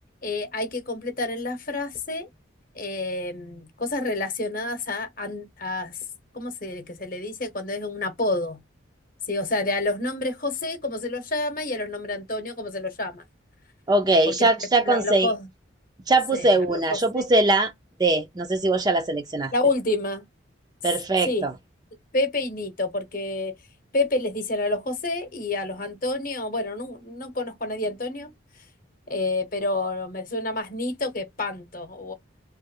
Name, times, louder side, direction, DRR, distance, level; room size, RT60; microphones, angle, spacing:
voice 1, 0.2-2.3 2.7-6.0 6.3-8.6 9.3-13.2 14.3-14.5 14.7-15.5 16.3-17.3 19.5-20.2 21.2-21.5 22.1-23.5 23.9-28.3 28.6-28.7 29.1-32.1, left 2 dB, 45° left, 0.9 m, -29 dB
voice 2, 13.9-15.3 16.1-17.7 18.0-19.5 20.8-21.5, right 2 dB, 20° right, 0.4 m, -21 dB
3.1 x 2.0 x 3.6 m
head